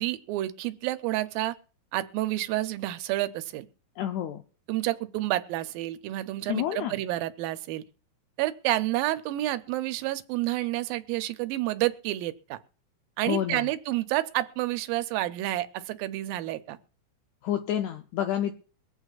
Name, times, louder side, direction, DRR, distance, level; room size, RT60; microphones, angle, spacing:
voice 1, 0.0-1.6 1.9-3.7 4.7-7.8 8.4-12.6 13.2-16.8, right 16 dB, 85° right, 12 dB, 2.4 m, -29 dB
voice 2, 4.0-4.4 6.5-6.9 13.3-13.7 17.4-18.5, left 11 dB, 85° left, 6 dB, 1.7 m, -29 dB
23.5 x 8.0 x 2.4 m, 0.41 s
omnidirectional pair, 4.0 m